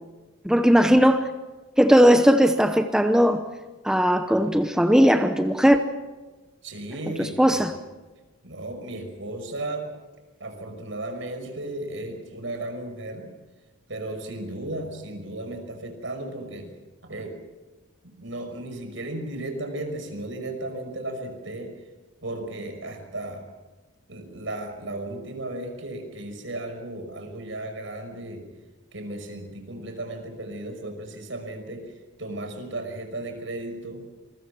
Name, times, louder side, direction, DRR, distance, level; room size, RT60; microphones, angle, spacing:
voice 1, 0.4-1.3 1.8-3.4 3.8-5.8 7.2-7.7, equal, 5° right, 0.9 m, -18 dB
voice 2, 6.6-7.6 8.4-9.8 10.4-13.2 13.9-16.7 17.0-17.3 18.0-21.7 22.2-23.4 24.1-28.4 28.9-31.9 32.2-34.1, right 1 dB, 70° right, 5.6 m, -35 dB
27.5 x 22.0 x 6.2 m
head